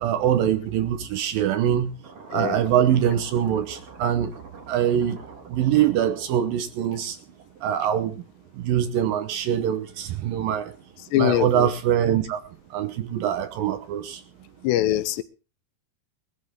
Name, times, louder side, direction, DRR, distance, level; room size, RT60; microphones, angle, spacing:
voice 1, 0.0-1.9 2.3-4.3 4.7-5.2 5.5-7.2 7.6-8.2 8.6-10.7 11.2-12.4 12.7-14.2, right 10 dB, 70° right, 2.4 m, -23 dB
sound 1, 2.0-7.8, right 4 dB, 40° right, 3.1 m, -46 dB
voice 2, 11.1-11.7 14.6-15.2, left 14 dB, 85° left, 3.1 m, -22 dB
21.0 x 13.0 x 3.5 m
omnidirectional pair, 4.9 m